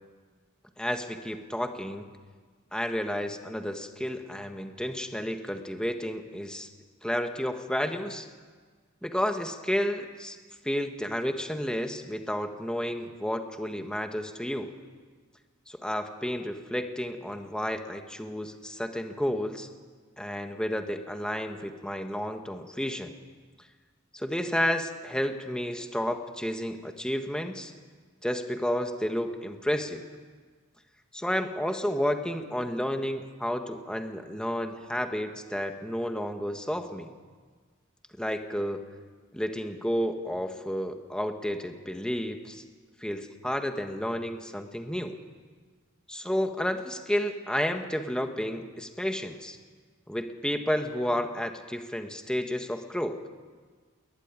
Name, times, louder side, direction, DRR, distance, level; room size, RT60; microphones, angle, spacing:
voice 1, 0.8-2.1 2.7-6.7 7.0-8.3 9.0-10.4 10.6-14.7 15.7-19.7 20.2-23.1 24.1-27.7 28.2-30.0 31.1-37.1 38.2-38.8 39.3-42.6 43.0-45.2 46.1-49.6 50.1-53.2, equal, 5° left, 5 dB, 1.6 m, -31 dB
21.0 x 19.5 x 9.8 m, 1.5 s
head